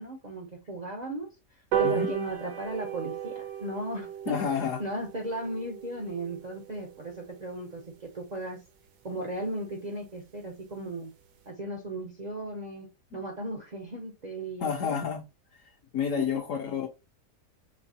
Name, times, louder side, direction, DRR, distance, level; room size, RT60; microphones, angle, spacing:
voice 1, 0.0-8.6 9.0-11.1 11.5-12.9 13.1-15.0, right 1 dB, 65° right, 0.4 m, -36 dB
sound 1, 1.7-8.5 8.9-9.0 9.3-9.4 9.7-9.8 10.1-10.2 10.5-10.7 11.2-11.3, right 10 dB, 80° right, 1.3 m, -35 dB
voice 2, 4.3-4.8 13.1-13.2 14.6-15.2 15.6-16.9, left 7 dB, 65° left, 0.8 m, -30 dB
5.3 x 2.6 x 2.7 m
omnidirectional pair, 1.7 m